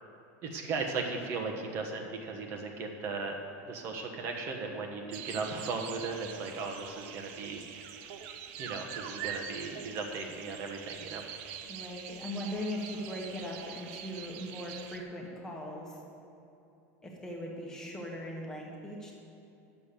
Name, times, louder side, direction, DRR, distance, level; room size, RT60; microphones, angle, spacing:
voice 1, 0.4-3.3 3.7-7.6 7.9-8.1 8.6-11.2, right 4 dB, 35° right, 2 dB, 1.3 m, -37 dB
sound 1, 5.1-15.0, right 8 dB, 50° right, 0.7 m, -44 dB
voice 2, 11.7-16.0 17.0-19.1, left 1 dB, 5° left, -2 dB, 1.5 m, -39 dB
11.0 x 7.3 x 6.7 m, 2.9 s
supercardioid pair, 170°, 8 cm